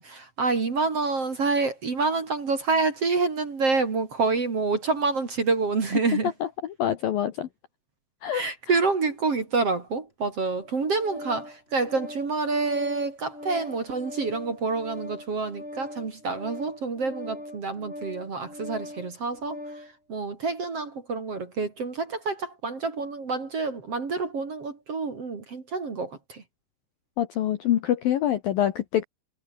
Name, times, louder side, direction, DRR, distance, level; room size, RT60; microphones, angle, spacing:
voice 1, 0.0-6.3 8.3-19.6 20.1-26.4, right 4 dB, 35° right, 3.2 m, -27 dB
voice 2, 6.4-7.5 8.2-8.8 27.2-29.0, left 11 dB, 65° left, 2.4 m, -26 dB
Organ, 10.5-19.9, left 1 dB, 10° left, 7.9 m, -41 dB
omnidirectional pair, 5.5 m